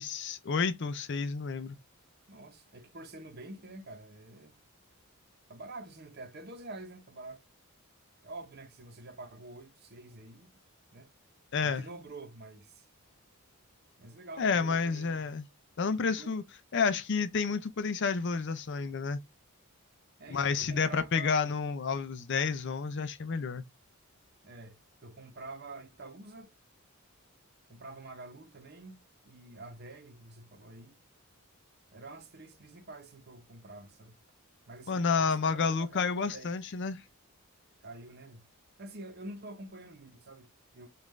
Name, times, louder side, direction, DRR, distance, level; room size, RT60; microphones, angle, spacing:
voice 1, 0.0-1.8 11.5-11.8 14.4-15.5 15.8-16.4 16.7-19.2 20.3-23.6 34.9-37.0, left 5 dB, 55° left, 0.5 m, -30 dB
voice 2, 2.3-4.6 5.5-7.4 8.2-10.5 10.9-11.1 11.6-12.9 14.0-15.3 16.1-16.4 20.2-21.5 24.4-26.5 27.7-29.0 29.2-31.0 31.9-34.2 34.7-36.6 37.8-38.5 38.8-40.9, right 2 dB, 45° right, 0.8 m, -47 dB
5.3 x 2.5 x 3.2 m
head